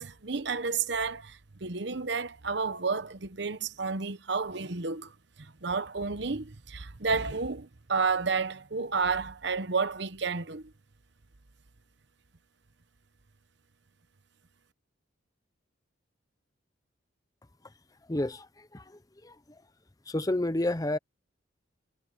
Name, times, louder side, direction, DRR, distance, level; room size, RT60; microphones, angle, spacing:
voice 1, 0.0-5.1 5.4-10.7, right 4 dB, 60° right, 1.1 m, -31 dB
voice 2, 18.1-18.5 18.7-18.8 19.2-19.3 20.1-21.0, left 1 dB, 20° left, 0.7 m, -29 dB
head